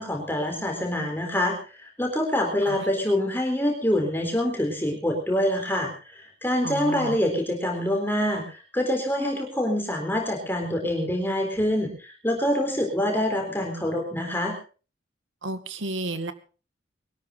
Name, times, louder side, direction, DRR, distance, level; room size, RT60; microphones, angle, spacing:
voice 1, 0.0-1.5 1.8-14.5, left 1 dB, 10° left, 1 dB, 4.1 m, -26 dB
voice 2, 6.6-7.2 15.4-16.3, right 1 dB, 90° right, 10 dB, 2.1 m, -32 dB
22.5 x 13.0 x 4.0 m, 0.37 s
head